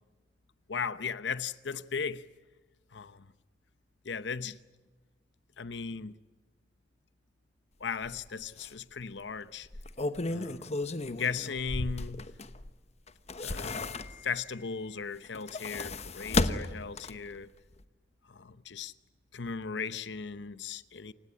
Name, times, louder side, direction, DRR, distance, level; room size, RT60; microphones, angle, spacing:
voice 1, 0.7-2.2 2.9-3.3 4.0-4.6 5.6-6.2 7.8-9.7 10.3-10.8 11.0-12.2 13.4-13.9 14.2-17.5 18.3-18.9 19.3-21.1, left 5 dB, 90° left, 0.8 m, -37 dB
sound 1, 8.1-8.2 8.6-8.7 9.6-12.7 13.1-14.4 15.2-17.4 17.7-17.8, left 2 dB, 40° left, 1.1 m, -34 dB
28.5 x 17.0 x 10.0 m
head